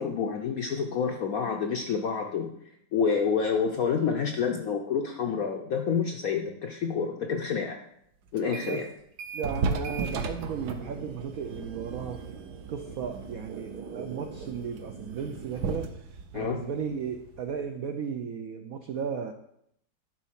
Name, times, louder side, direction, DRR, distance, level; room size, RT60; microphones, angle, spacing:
voice 1, 0.0-2.5 2.9-7.8 8.3-8.9 16.3-16.7, left 6 dB, 70° left, 4 dB, 0.8 m, -28 dB
sound 1, 8.4-8.9 9.2-17.6, right 4 dB, 65° right, 1.2 m, -36 dB
voice 2, 8.5-8.9 9.3-12.2 12.7-15.9 16.3-19.3, right 6 dB, 80° right, 6 dB, 0.7 m, -35 dB
11.0 x 4.2 x 5.8 m, 0.74 s
omnidirectional pair, 2.2 m